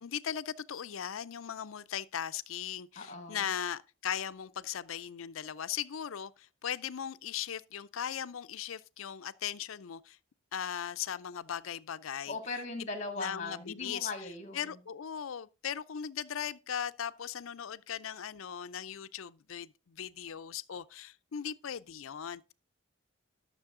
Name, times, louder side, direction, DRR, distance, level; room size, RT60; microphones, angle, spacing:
voice 1, 0.0-10.2 10.5-12.4 13.2-14.1 14.5-22.5, left 9 dB, 85° left, 0.5 m, -38 dB
voice 2, 3.0-3.5 12.3-14.8, left 3 dB, 35° left, 2.1 m, -39 dB
12.5 x 6.8 x 3.7 m
head